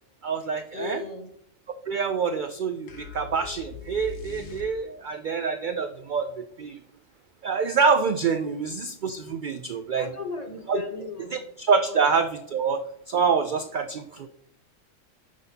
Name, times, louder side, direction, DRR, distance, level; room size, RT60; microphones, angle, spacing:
voice 1, 0.2-1.0 1.9-6.8 7.4-10.1 10.7-10.8 11.3-14.3, right 5 dB, 70° right, 9 dB, 0.4 m, -26 dB
voice 2, 0.7-1.3 10.0-11.4 11.9-12.0, left 4 dB, 35° left, 4 dB, 0.9 m, -36 dB
sound 1, 2.9-5.1, left 6 dB, 90° left, 1.4 m, -41 dB
9.1 x 6.2 x 2.8 m, 0.71 s
omnidirectional pair, 1.3 m